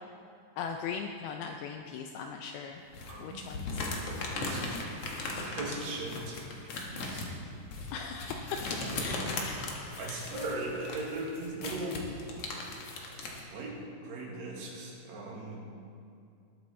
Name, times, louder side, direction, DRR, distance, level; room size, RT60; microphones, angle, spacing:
voice 1, 0.6-2.8 3.2-3.7 4.7-4.8 7.9-8.6 9.0-9.6 10.0-10.2, left 6 dB, 80° left, 4 dB, 2.3 m, -39 dB
sound 1, 2.9-13.4, left 3 dB, 60° left, 1.7 m, -38 dB
voice 2, 3.1-3.5 4.4-4.8 5.3-6.5 6.7-7.2 8.8-9.4 10.0-12.0 13.5-15.6, right 2 dB, 75° right, -2 dB, 4.0 m, -39 dB
20.0 x 9.4 x 4.2 m, 2.5 s
omnidirectional pair, 4.9 m